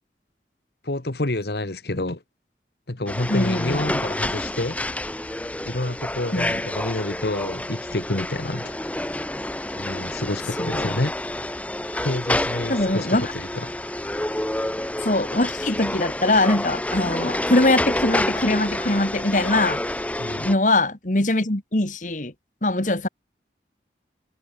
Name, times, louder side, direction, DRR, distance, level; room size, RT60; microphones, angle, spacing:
voice 1, 0.8-2.2 2.9-4.8 5.6-8.9 9.8-11.1 12.0-13.1 13.3-13.7 20.2-20.5, left 2 dB, 65° left, 1.5 m, -28 dB
sound 1, 3.1-20.5, left 1 dB, 10° left, 0.7 m, -28 dB
voice 2, 3.3-4.0 6.3-6.6 10.6-10.9 12.7-13.3 15.0-19.8 20.4-22.3 22.6-23.1, left 2 dB, 45° left, 2.0 m, -22 dB
head